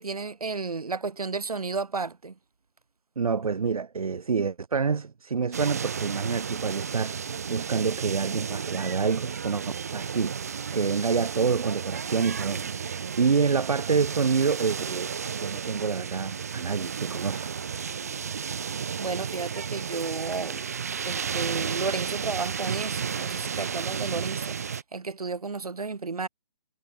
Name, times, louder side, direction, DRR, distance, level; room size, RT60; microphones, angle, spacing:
voice 1, 0.0-2.4 7.3-7.4 19.0-20.7 21.1-26.3, right 4 dB, 90° right, 3.7 m, -32 dB
voice 2, 3.2-7.2 7.5-9.6 9.9-10.3 10.7-17.5, right 5 dB, 70° right, 1.0 m, -27 dB
sound 1, 5.5-24.8, right 7 dB, 25° right, 1.2 m, -33 dB
hypercardioid pair, 180°, 19 cm